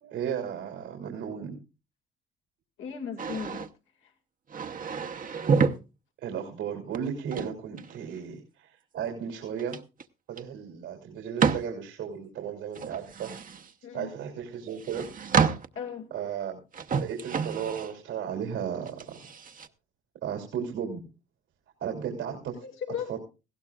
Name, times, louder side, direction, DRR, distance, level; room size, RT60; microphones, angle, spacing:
voice 1, 0.0-1.6 6.2-9.8 10.3-13.3 13.9-15.1 16.1-16.6 17.0-19.2 20.2-21.0 21.8-22.6 23.1-23.2, right 8 dB, 90° right, 1 dB, 3.0 m, -35 dB
voice 2, 2.8-3.7 4.0-4.1 13.8-14.1 15.8-16.1 22.6-23.1, left 7 dB, 80° left, 2 dB, 2.2 m, -36 dB
sound 1, 3.2-3.7 4.5-5.8 6.9-8.2 9.6-10.0 10.4-10.5 11.4-11.7 12.7-13.7 14.7-15.8 16.7-17.9 18.9-19.7, right 6 dB, 45° right, 0.9 m, -28 dB
19.0 x 16.0 x 2.4 m, 0.31 s
cardioid pair, 90°, 20 cm